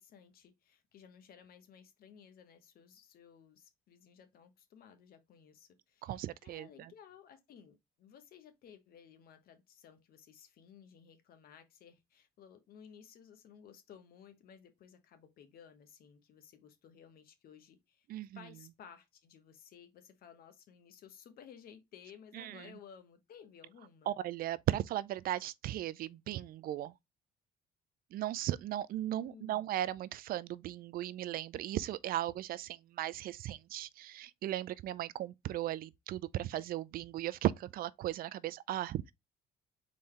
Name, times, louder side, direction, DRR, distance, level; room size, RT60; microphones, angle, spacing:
voice 1, 0.0-18.1 18.3-24.2 29.1-29.7, left 8 dB, 60° left, 1.2 m, -57 dB
voice 2, 6.0-6.9 18.1-18.4 22.3-22.7 24.1-26.9 28.1-39.1, right 13 dB, 60° right, 0.4 m, -37 dB
4.2 x 3.8 x 3.1 m
cardioid pair, 110°, 17 cm